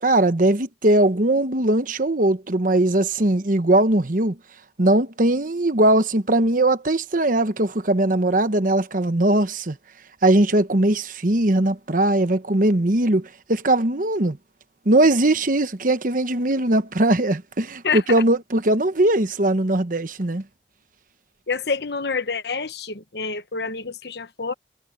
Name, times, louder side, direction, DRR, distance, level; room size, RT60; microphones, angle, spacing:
voice 1, 0.0-4.4 4.8-9.8 10.2-14.4 14.8-20.4, right 1 dB, 45° right, 1.1 m, -20 dB
voice 2, 17.8-18.2 21.5-24.5, left 5 dB, 60° left, 1.1 m, -27 dB
head